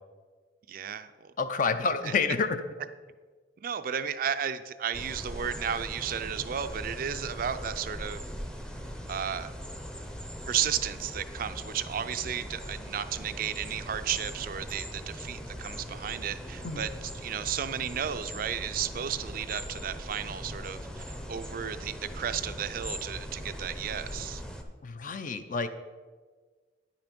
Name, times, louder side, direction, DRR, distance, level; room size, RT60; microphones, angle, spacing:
voice 1, 0.7-1.3 2.0-2.1 3.6-8.2 9.1-9.5 10.5-16.9 17.1-24.4, right 8 dB, 50° right, 11 dB, 0.4 m, -33 dB
voice 2, 1.4-2.6 16.6-16.9 24.8-25.7, left 4 dB, 50° left, 10 dB, 0.5 m, -28 dB
sound 1, 4.9-24.6, equal, 5° left, 0.6 m, -40 dB
9.7 x 5.8 x 5.2 m, 1.4 s
head